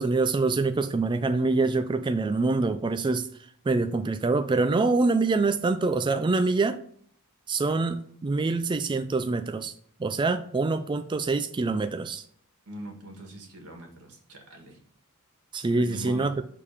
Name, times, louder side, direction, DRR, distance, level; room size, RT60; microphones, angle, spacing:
voice 1, 0.0-3.3 3.7-6.8 7.5-9.7 10.0-12.2 15.5-16.3, right 3 dB, 20° right, 8 dB, 0.3 m, -25 dB
voice 2, 12.7-14.8 15.8-16.3, right 1 dB, 85° right, 2 dB, 1.8 m, -42 dB
6.6 x 3.6 x 5.0 m, 0.63 s
head